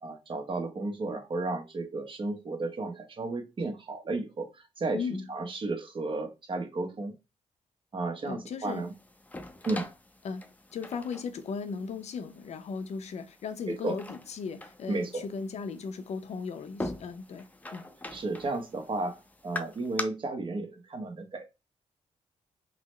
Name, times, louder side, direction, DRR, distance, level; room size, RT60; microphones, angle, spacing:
voice 1, 0.0-5.0 5.3-7.1 7.9-8.9 9.6-9.9 13.7-14.0 14.9-15.2 18.1-21.4, right 2 dB, 45° right, 0.9 m, -33 dB
voice 2, 4.9-5.3 8.3-8.9 10.2-17.9, left 5 dB, 65° left, 0.6 m, -37 dB
sound 1, 8.6-20.0, left 2 dB, 10° left, 0.5 m, -43 dB
3.7 x 2.1 x 3.1 m
cardioid pair, 90°, 12 cm